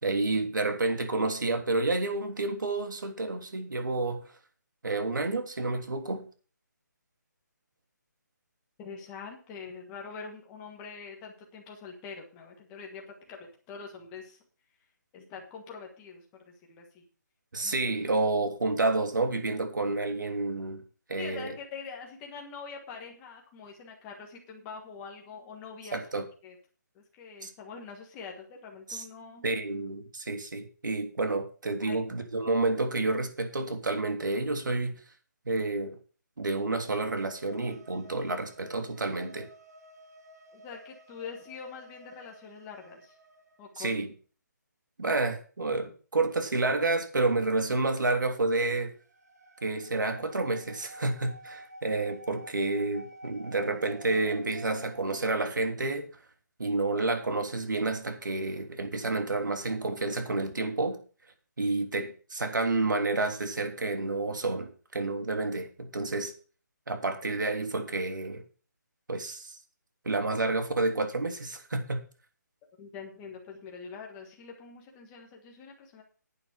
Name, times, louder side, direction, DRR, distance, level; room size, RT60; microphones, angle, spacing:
voice 1, 0.0-4.2 4.8-6.2 17.5-20.8 21.1-21.5 25.9-26.2 27.4-27.5 28.9-29.0 29.4-35.0 35.4-36.0 36.4-39.5 43.8-44.1 45.0-48.9 49.6-56.1 56.6-61.0 61.6-66.3 66.9-68.4 69.1-69.5 70.0-72.0, right 2 dB, 85° right, 3.3 m, -29 dB
voice 2, 8.8-14.4 15.1-17.0 17.6-17.9 21.2-26.0 26.4-26.6 26.9-29.4 31.8-32.0 40.5-43.2 43.6-43.9 72.8-76.0, left 5 dB, 10° left, 1.4 m, -44 dB
sound 1, 36.9-43.9 49.0-55.3, right 1 dB, 55° right, 4.8 m, -51 dB
11.0 x 9.1 x 5.0 m
hypercardioid pair, 180°, 10 cm